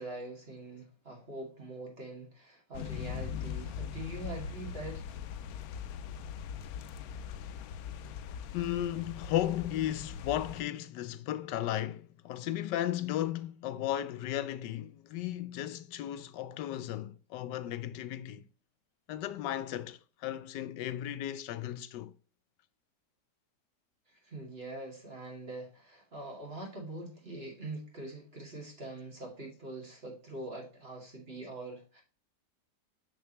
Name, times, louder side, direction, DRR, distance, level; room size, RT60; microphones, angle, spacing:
voice 1, 0.0-5.0 24.1-32.0, right 2 dB, 35° right, 2.3 m, -43 dB
sound 1, 2.7-10.6, left 8 dB, 70° left, 0.9 m, -41 dB
voice 2, 8.5-18.5 19.1-22.1, left 12 dB, 90° left, 1.3 m, -35 dB
6.7 x 6.6 x 2.9 m
omnidirectional pair, 1.8 m